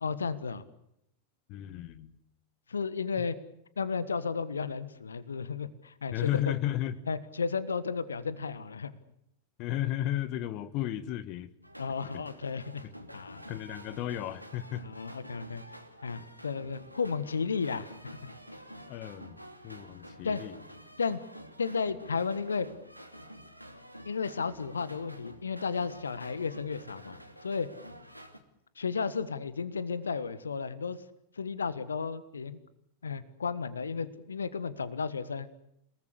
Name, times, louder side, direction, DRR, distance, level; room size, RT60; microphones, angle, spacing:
voice 1, 0.0-0.6 2.7-3.4 3.8-6.5 7.1-8.9 11.8-12.8 13.1-13.4 14.8-15.6 16.0-17.9 20.2-20.4 21.0-21.2 21.6-22.7 24.0-27.7 28.8-31.0 31.4-32.6 33.0-35.5, left 5 dB, 75° left, 16 dB, 1.5 m, -33 dB
voice 2, 1.5-2.2 6.1-7.0 9.6-11.5 12.8-12.9 13.5-14.8 18.9-20.5, left 12 dB, 40° left, 16 dB, 1.5 m, -34 dB
sound 1, 11.6-28.4, equal, 90° left, 2.7 m, -49 dB
29.5 x 19.5 x 8.2 m, 0.77 s
figure-of-eight pair, 90°, 0 cm